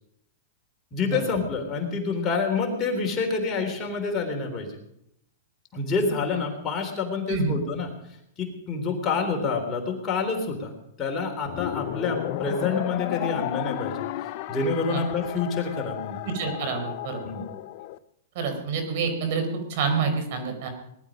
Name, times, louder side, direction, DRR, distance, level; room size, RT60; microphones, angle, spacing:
voice 1, 0.9-4.8 5.7-7.9 8.4-10.7 11.0-14.1 14.5-16.2 17.2-17.5, left 4 dB, 25° left, 1 dB, 3.4 m, -27 dB
sound 1, 11.5-18.0, left 14 dB, 50° left, 0.6 m, -33 dB
voice 2, 16.2-17.2 18.3-20.7, right 5 dB, 55° right, 6 dB, 4.5 m, -27 dB
19.5 x 12.0 x 5.2 m, 0.76 s
hypercardioid pair, 145°, 0 cm